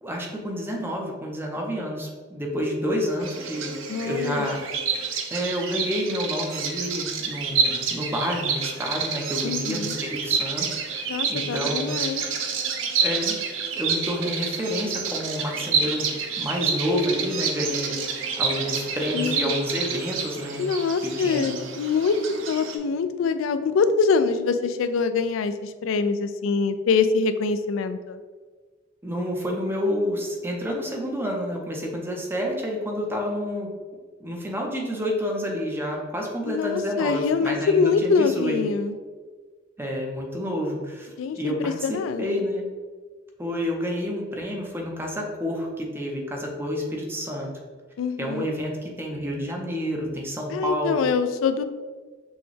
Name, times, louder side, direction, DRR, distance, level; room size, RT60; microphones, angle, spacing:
voice 1, 0.0-4.6 5.3-12.0 13.0-13.3 13.7-20.7 21.0-21.6 29.0-33.7 34.2-38.6 39.8-42.7 43.4-47.6 48.2-51.0, equal, 10° right, 0 dB, 0.7 m, -29 dB
Bird vocalization bird call bird song, 3.2-22.8, right 5 dB, 80° right, 0.6 m, -29 dB
voice 2, 3.9-4.5 9.4-10.0 11.1-12.2 19.1-19.5 20.6-22.2 22.5-28.2 36.5-39.0 41.2-42.4 48.0-48.5 50.5-51.6, left 5 dB, 80° left, 10 dB, 0.3 m, -24 dB
6.2 x 2.3 x 3.2 m, 1.4 s
head